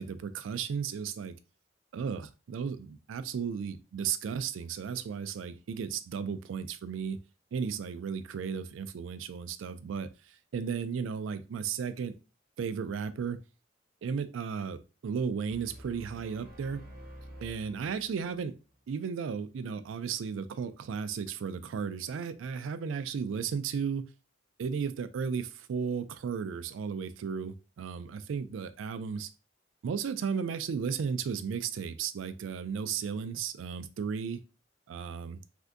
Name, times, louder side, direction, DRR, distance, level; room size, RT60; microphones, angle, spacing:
voice 1, 0.0-1.3 1.9-7.2 7.5-12.2 12.6-13.4 14.0-16.8 17.4-18.5 18.9-24.1 24.6-29.3 29.8-34.4 34.9-35.4, right 6 dB, 80° right, 0.3 m, -34 dB
sound 1, 15.5-18.6, right 1 dB, 55° right, 0.8 m, -49 dB
3.4 x 2.6 x 2.5 m
head